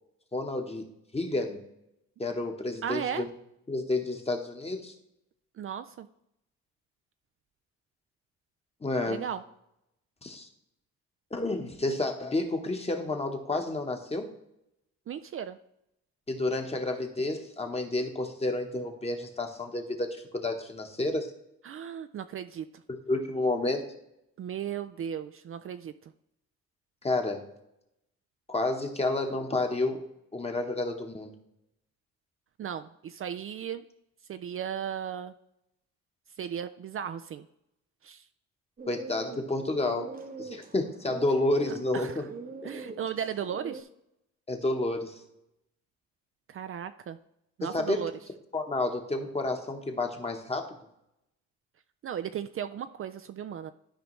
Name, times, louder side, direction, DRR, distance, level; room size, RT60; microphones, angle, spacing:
voice 1, 0.3-0.8 1.1-1.6 2.2-3.3 3.7-4.9 8.8-9.2 10.2-10.5 11.3-14.3 16.3-21.3 23.1-23.8 27.0-27.5 28.5-30.0 30.3-31.3 38.9-40.1 40.4-42.3 44.5-45.2 47.6-48.0 48.5-50.7, left 2 dB, 20° left, 4 dB, 1.2 m, -30 dB
voice 2, 2.8-3.2 5.6-6.1 9.1-9.4 15.1-15.6 21.6-22.7 24.4-25.9 32.6-33.8 34.3-35.3 36.4-37.4 38.0-38.2 41.9-42.1 42.6-43.9 46.5-47.2 47.6-48.1 52.0-53.7, right 9 dB, 45° right, 10 dB, 0.4 m, -35 dB
sound 1, 38.8-43.8, right 4 dB, 30° right, 0.9 m, -43 dB
12.5 x 4.9 x 3.2 m, 0.83 s
cardioid pair, 90°, 30 cm